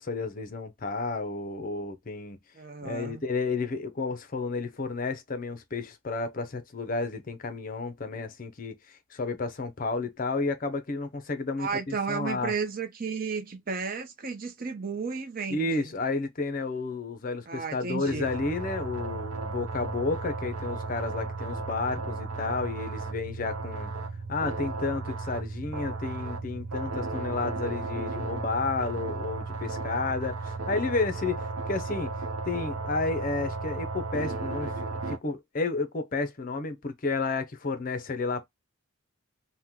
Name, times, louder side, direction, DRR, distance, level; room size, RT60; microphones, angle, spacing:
voice 1, 0.0-2.4 2.8-12.5 15.5-23.9 24.3-32.1 32.4-38.5, left 3 dB, 40° left, 0.5 m, -31 dB
voice 2, 2.5-3.2 11.6-15.9 17.5-18.3, right 5 dB, 40° right, 0.6 m, -33 dB
sound 1, 18.1-35.2, right 3 dB, 80° right, 0.7 m, -34 dB
2.9 x 2.2 x 3.5 m
head